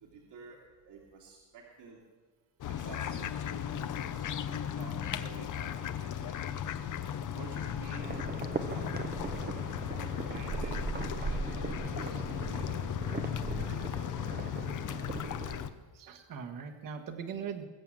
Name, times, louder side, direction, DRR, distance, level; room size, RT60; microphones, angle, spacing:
voice 1, 0.0-2.0 2.6-8.1 8.6-9.7 10.3-12.8 13.6-14.0 16.2-16.7, right 5 dB, 65° right, -2 dB, 2.8 m, -52 dB
sound 1, 2.6-15.7, left 9 dB, 45° left, 0.8 m, -36 dB
sound 2, 8.0-15.7, right 4 dB, 20° right, 0.8 m, -39 dB
voice 2, 15.9-17.7, right 7 dB, 45° right, 5 dB, 1.5 m, -41 dB
21.5 x 7.8 x 7.7 m, 1.4 s
cardioid pair, 165°, 44 cm